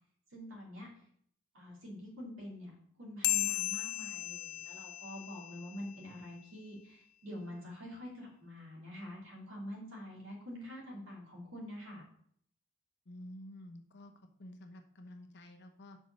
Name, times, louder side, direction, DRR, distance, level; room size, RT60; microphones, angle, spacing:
voice 1, 0.3-0.9 1.5-2.7 3.0-12.0, left 1 dB, 60° right, -3 dB, 2.8 m, -46 dB
sound 1, 3.2-6.1, left 17 dB, 90° left, 0.4 m, -36 dB
voice 2, 13.1-14.1 14.4-16.0, left 1 dB, 50° left, 5 dB, 0.9 m, -50 dB
5.6 x 4.6 x 6.2 m, 0.65 s
head